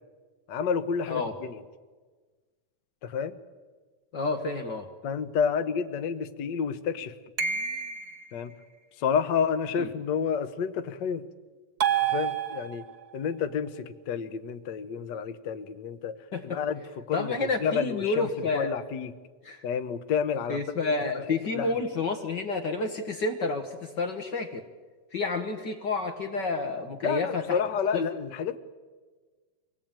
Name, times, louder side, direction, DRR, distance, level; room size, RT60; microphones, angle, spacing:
voice 1, 0.5-1.6 3.0-3.4 5.0-7.1 8.3-8.5 9.0-11.2 12.1-12.8 13.1-16.2 16.4-16.8 17.1-17.3 17.6-19.1 19.6-20.6 21.5-21.7 27.0-28.6, left 6 dB, 90° left, 9 dB, 0.9 m, -29 dB
voice 2, 4.1-4.9 9.8-9.9 16.3-16.6 17.1-18.7 19.4-19.6 20.5-24.6 25.1-27.6 27.9-28.0, left 3 dB, 50° left, 5 dB, 1.4 m, -30 dB
sound 1, 7.4-8.3 11.8-13.0, right 8 dB, 45° right, 1.4 m, -28 dB
24.5 x 18.5 x 8.9 m, 1.4 s
omnidirectional pair, 3.5 m